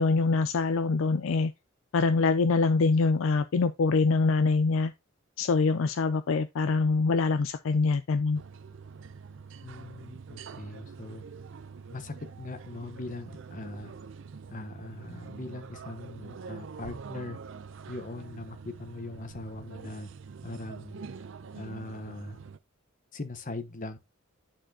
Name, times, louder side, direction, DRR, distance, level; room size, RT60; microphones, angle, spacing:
voice 1, 0.0-1.5 1.9-4.9 5.4-8.4, left 4 dB, 70° left, 0.4 m, -24 dB
sound 1, 8.3-22.6, right 5 dB, 65° right, 0.5 m, -45 dB
voice 2, 9.6-11.2 11.9-13.9 14.5-17.4 17.9-20.1 20.4-21.0 21.6-22.4 23.1-24.0, left 2 dB, 40° left, 0.9 m, -40 dB
10.0 x 4.3 x 2.8 m
head